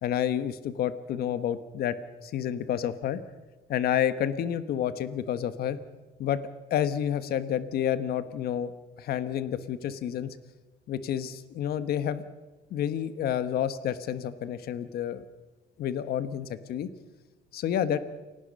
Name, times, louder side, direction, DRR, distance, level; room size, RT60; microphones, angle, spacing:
voice 1, 0.0-1.9 2.2-3.2 3.7-5.8 6.2-6.4 6.7-8.7 9.0-10.4 10.9-12.2 12.7-15.2 15.8-16.9 17.5-18.0, left 10 dB, 65° left, 11 dB, 1.4 m, -29 dB
29.0 x 18.5 x 5.5 m, 1.2 s
cardioid pair, 110°, 17 cm